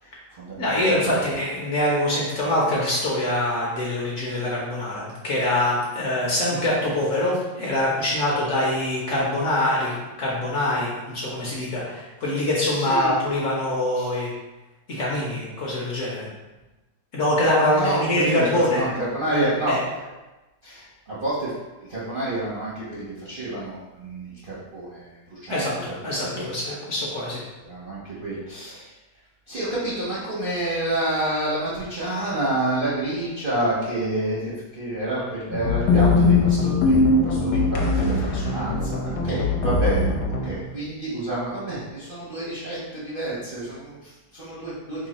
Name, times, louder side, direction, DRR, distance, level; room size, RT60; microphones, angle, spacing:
voice 1, 0.0-1.2 4.3-4.4 12.7-13.2 13.9-14.1 17.6-20.0 20.6-21.5 21.9-26.7 27.6-28.9 29.5-37.0 37.2-40.1 40.4-45.1, right 1 dB, 55° right, -8 dB, 0.6 m, -29 dB
voice 2, 0.6-14.3 14.9-16.3 17.1-18.8 19.7-19.8 25.5-27.4, left 1 dB, 60° left, -5 dB, 0.9 m, -24 dB
sound 1, 35.5-40.5, left 3 dB, 75° left, 1.2 m, -21 dB
3.1 x 2.6 x 4.0 m, 1.1 s
omnidirectional pair, 1.9 m